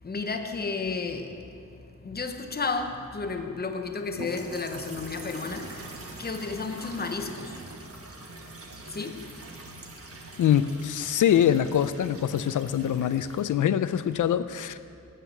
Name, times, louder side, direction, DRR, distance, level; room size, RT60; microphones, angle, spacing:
voice 1, 0.0-1.6 2.0-7.6 7.9-8.3 8.9-9.3, left 4 dB, 30° left, 6 dB, 0.8 m, -33 dB
sound 1, 4.1-14.3, right 2 dB, 45° right, 1.2 m, -44 dB
voice 2, 10.4-14.8, left 9 dB, 75° left, 13 dB, 0.5 m, -24 dB
8.9 x 8.2 x 7.3 m, 2.6 s
wide cardioid pair, 140°, 31 cm